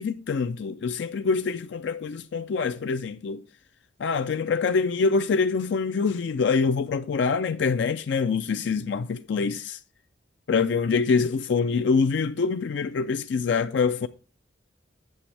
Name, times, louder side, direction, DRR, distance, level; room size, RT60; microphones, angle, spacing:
voice 1, 0.0-3.4 4.0-9.8 10.5-14.1, left 5 dB, 70° left, 0.4 m, -25 dB
8.6 x 7.1 x 3.3 m
head